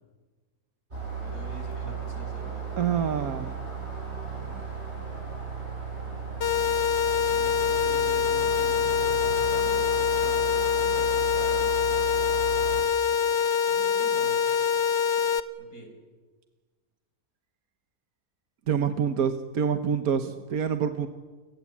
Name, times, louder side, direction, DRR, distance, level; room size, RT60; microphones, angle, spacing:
sound 1, 0.9-12.8, right 5 dB, 45° right, 8.3 m, -36 dB
voice 1, 1.2-3.1 7.3-11.7 13.7-14.5 15.6-15.9, left 1 dB, 75° left, 3 dB, 6.4 m, -44 dB
voice 2, 2.8-3.5 4.5-4.6 18.7-21.1, right 7 dB, 80° right, 8 dB, 1.7 m, -27 dB
sound 2, 6.4-15.4, left 7 dB, 50° left, 1.3 m, -24 dB
29.0 x 23.0 x 8.6 m, 1.3 s
omnidirectional pair, 1.5 m